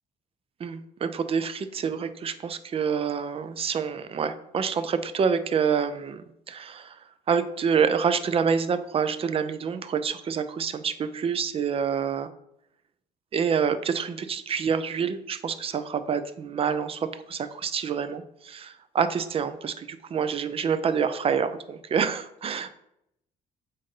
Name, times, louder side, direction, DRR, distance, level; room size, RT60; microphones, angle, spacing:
voice 1, 0.6-6.2 6.5-6.9 7.3-10.9 11.2-12.3 13.3-22.7, right 6 dB, 35° right, 11 dB, 0.5 m, -27 dB
7.9 x 2.6 x 5.3 m, 0.79 s
cardioid pair, 110°, 17 cm